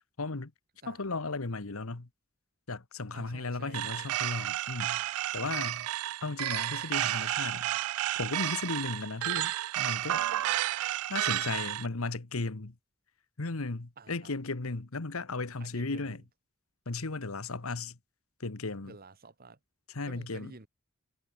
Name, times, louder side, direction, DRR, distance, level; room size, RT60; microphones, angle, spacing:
voice 1, 0.2-0.5 0.9-2.1 2.7-5.9 6.2-7.7 8.2-10.2 11.1-12.8 13.4-16.2 16.9-18.0 18.4-18.9 19.9-20.5, left 3 dB, 85° left, 1.4 m, -35 dB
voice 2, 3.1-4.1 14.0-14.3 15.6-16.2 18.8-19.6 20.1-20.7, right 3 dB, 45° right, 1.7 m, -50 dB
sound 1, 3.7-11.9, right 14 dB, 85° right, 0.3 m, -32 dB
head